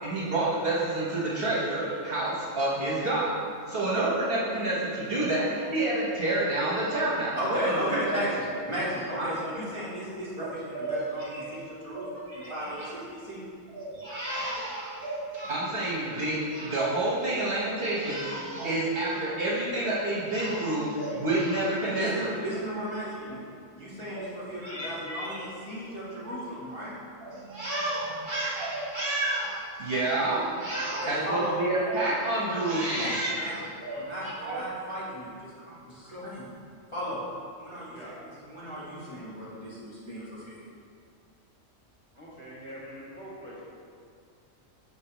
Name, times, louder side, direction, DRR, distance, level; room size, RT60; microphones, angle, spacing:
voice 1, 0.0-3.3 3.6-8.3 9.1-9.3 10.4-11.5 11.9-12.9 13.7-22.3 24.1-24.3 24.6-25.4 27.2-34.6, right 2 dB, 50° right, -7 dB, 1.1 m, -29 dB
voice 2, 7.3-13.4 21.9-23.4 23.7-26.9 30.9-31.6 32.9-33.5 33.9-36.5 36.9-37.2 37.6-38.0 38.3-40.6, equal, 25° left, -10 dB, 1.1 m, -35 dB
voice 3, 42.1-43.6, equal, 25° right, -8 dB, 1.1 m, -44 dB
6.2 x 5.3 x 2.9 m, 2.3 s
omnidirectional pair, 1.4 m